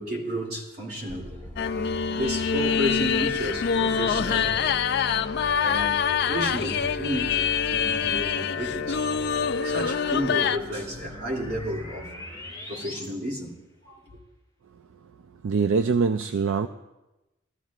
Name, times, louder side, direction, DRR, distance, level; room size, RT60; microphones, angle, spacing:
voice 1, 0.0-5.1 5.6-12.1 12.7-13.6 13.8-14.0, equal, 50° right, 2.5 m, -32 dB
sound 1, 1.1-13.1, equal, 30° right, 4.1 m, -40 dB
sound 2, 1.6-10.6, left 7 dB, 50° left, 0.4 m, -25 dB
voice 2, 15.4-16.7, right 5 dB, 70° right, 0.4 m, -23 dB
22.0 x 13.5 x 2.4 m
head